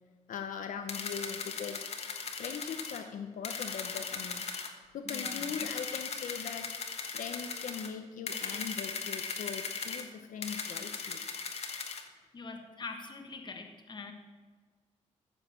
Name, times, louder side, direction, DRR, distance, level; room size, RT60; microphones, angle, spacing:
voice 1, 0.3-1.9 2.3-4.5 4.9-6.7 7.0-11.2, left 7 dB, 85° left, 6 dB, 0.9 m, -40 dB
sound 1, 0.9-3.0 3.4-4.7 5.1-7.9 8.3-10.0 10.4-12.0, left 5 dB, 55° left, 1.3 m, -38 dB
voice 2, 5.0-5.6 7.0-7.1 12.3-14.1, left 4 dB, 35° left, 3 dB, 1.3 m, -44 dB
14.5 x 6.5 x 7.1 m, 1.5 s
wide cardioid pair, 145°, 13 cm